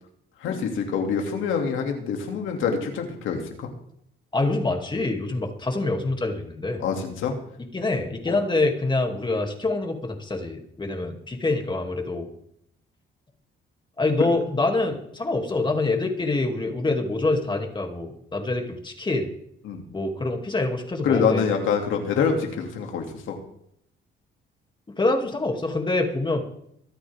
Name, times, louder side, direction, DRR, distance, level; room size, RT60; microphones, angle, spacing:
voice 1, 0.4-3.7 6.8-7.4 8.3-8.4 10.8-11.0 14.2-14.3 19.6-19.8 21.0-23.4, left 6 dB, 85° left, 3 dB, 2.6 m, -26 dB
voice 2, 4.3-6.8 7.7-12.3 14.0-19.3 19.9-21.4 25.0-26.4, left 2 dB, 25° left, 2 dB, 2.7 m, -25 dB
25.0 x 8.9 x 3.7 m, 0.72 s
cardioid pair, 90°, 20 cm